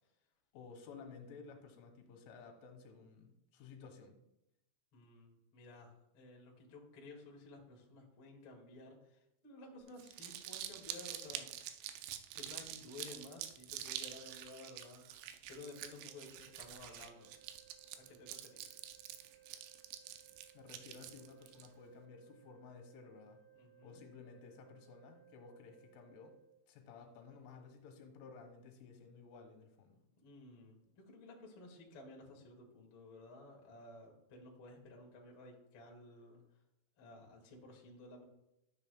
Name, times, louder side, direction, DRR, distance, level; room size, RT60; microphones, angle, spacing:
voice 1, 0.5-4.2 20.5-23.5 23.8-26.4 26.7-30.0, left 5 dB, 85° left, 4 dB, 3.8 m, -55 dB
voice 2, 4.9-11.5 12.3-17.4 18.0-18.7 23.5-24.0 30.2-36.6 37.0-38.2, left 2 dB, 60° left, -1 dB, 1.3 m, -55 dB
Crumpling crinkling, 9.9-21.7, right 11 dB, 80° right, 2.7 m, -47 dB
Organ, 16.0-27.1, right 12 dB, 65° right, 1.4 m, -65 dB
12.0 x 8.1 x 2.2 m, 0.85 s
omnidirectional pair, 5.5 m